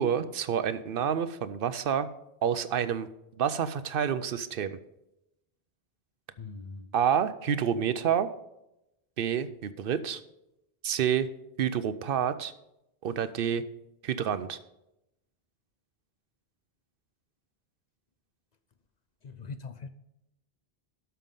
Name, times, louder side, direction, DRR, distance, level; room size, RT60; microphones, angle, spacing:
voice 1, 0.0-2.1 2.4-3.1 3.4-4.8 6.9-8.3 9.2-10.2 10.8-11.3 11.6-12.5 13.0-13.6 14.0-14.6, right 8 dB, 65° right, 13 dB, 0.7 m, -28 dB
voice 2, 6.4-6.8 19.4-19.9, left 4 dB, 50° left, 10 dB, 0.6 m, -41 dB
12.5 x 5.7 x 5.4 m, 0.88 s
omnidirectional pair, 1.0 m